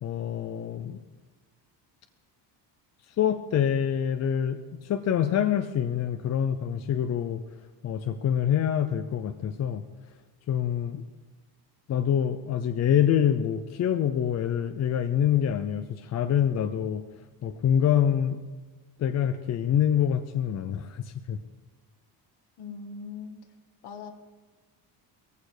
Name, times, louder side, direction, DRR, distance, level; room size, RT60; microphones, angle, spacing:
voice 1, 0.0-1.0 3.1-7.4 7.8-9.8 10.5-11.0 11.9-17.0 17.4-18.4 19.0-21.4, left 9 dB, 35° left, 9 dB, 0.6 m, -26 dB
voice 2, 22.6-23.3 23.8-24.2, left 5 dB, 60° left, 6 dB, 2.1 m, -40 dB
18.5 x 15.0 x 4.9 m, 1.3 s
cardioid pair, 175°, 44 cm